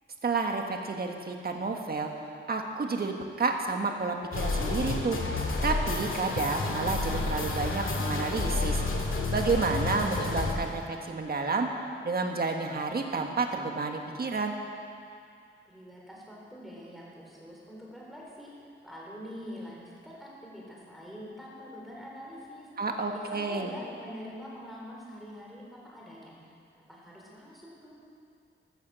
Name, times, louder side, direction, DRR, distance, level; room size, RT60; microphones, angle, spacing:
voice 1, 0.2-5.2 5.6-8.8 9.3-11.7 12.0-14.6 22.8-23.7, right 4 dB, 45° right, 3 dB, 1.5 m, -30 dB
sound 1, 4.3-10.5, left 3 dB, 75° left, 2.1 m, -30 dB
voice 2, 15.7-18.5 18.8-22.7 23.1-26.3 26.7-28.0, equal, ahead, -4 dB, 3.9 m, -45 dB
14.0 x 13.5 x 7.5 m, 2.4 s
wide cardioid pair, 175°, 21 cm